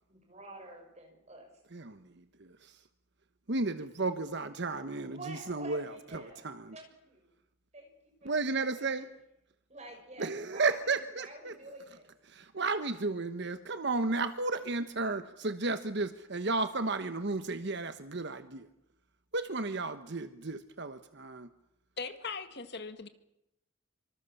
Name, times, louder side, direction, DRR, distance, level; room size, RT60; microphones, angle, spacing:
voice 1, 0.1-1.5 5.0-6.5 6.7-7.3 7.7-9.0 9.7-10.8 11.2-12.1, right 2 dB, 30° right, 3 dB, 6.5 m, -49 dB
voice 2, 1.7-2.0 2.4-2.8 3.5-6.8 8.2-9.1 10.2-11.6 12.3-18.7 19.3-21.5, right 3 dB, 55° right, 10 dB, 1.1 m, -33 dB
voice 3, 22.0-23.1, left 4 dB, 50° left, 10 dB, 1.9 m, -39 dB
26.0 x 25.5 x 7.1 m, 0.85 s
head